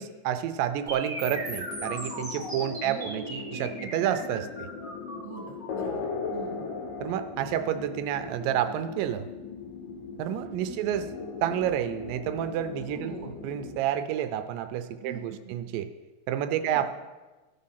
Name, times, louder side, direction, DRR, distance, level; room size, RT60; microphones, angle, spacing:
voice 1, 0.0-4.7 7.0-9.2 10.2-11.1 11.4-15.9 16.3-16.9, right 10 dB, 85° right, 9 dB, 2.3 m, -29 dB
sound 1, 0.9-8.8, right 1 dB, ahead, 1.6 m, -39 dB
sound 2, 1.3-13.8, left 4 dB, 80° left, 2.5 m, -39 dB
voice 2, 2.8-3.9 5.2-6.7 10.6-10.9 12.9-13.5 15.0-15.5 16.6-16.9, right 5 dB, 40° right, -2 dB, 2.2 m, -44 dB
14.5 x 5.2 x 5.7 m, 1.2 s
omnidirectional pair, 3.9 m